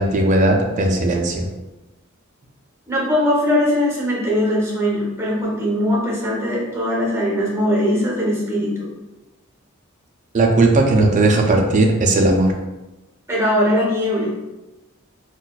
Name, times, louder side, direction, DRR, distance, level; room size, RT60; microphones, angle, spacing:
voice 1, 0.0-1.5 10.3-12.5, right 2 dB, 35° right, 2 dB, 0.4 m, -16 dB
voice 2, 2.9-8.9 13.3-14.3, left 1 dB, 15° right, -4 dB, 0.9 m, -20 dB
3.9 x 2.2 x 2.4 m, 1.0 s
head